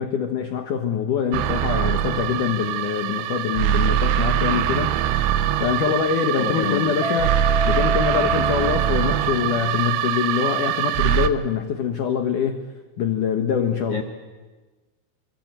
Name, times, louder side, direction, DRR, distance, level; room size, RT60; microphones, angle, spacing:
voice 1, 0.0-5.0 5.6-12.6 13.0-14.0, left 7 dB, 85° left, 6 dB, 1.7 m, -24 dB
sound 1, 1.3-11.3, right 11 dB, 75° right, 2.9 m, -23 dB
voice 2, 6.4-7.0 13.9-14.0, left 6 dB, 60° left, 3 dB, 1.1 m, -27 dB
Guitar, 7.0-9.8, equal, 10° left, 4.2 m, -28 dB
27.0 x 23.5 x 9.1 m, 1.3 s
omnidirectional pair, 5.8 m